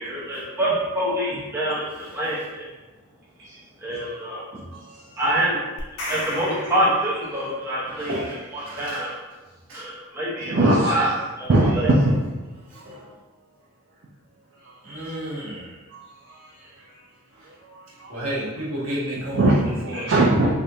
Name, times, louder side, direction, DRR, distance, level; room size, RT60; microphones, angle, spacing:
voice 1, 0.0-2.7 3.8-4.5 5.2-5.6 5.9-8.1 8.5-9.1 9.7-11.9, right 1 dB, 10° right, -7 dB, 0.6 m, -26 dB
voice 2, 1.9-2.4 4.5-4.7 7.8-9.1 9.7-9.9 12.7-13.1 14.8-15.8 17.3-17.5 17.9-20.1, right 1 dB, 75° right, -7 dB, 1.1 m, -33 dB
sound 1, 5.8-7.8, left 1 dB, 90° left, 0.6 m, -34 dB
voice 3, 10.5-11.1 11.5-12.0 13.0-13.1 14.9-15.0 16.3-16.7 17.6-18.1 19.3-19.6 19.9-20.6, right 2 dB, 55° right, -4 dB, 0.4 m, -21 dB
3.4 x 2.5 x 2.7 m, 1.2 s
head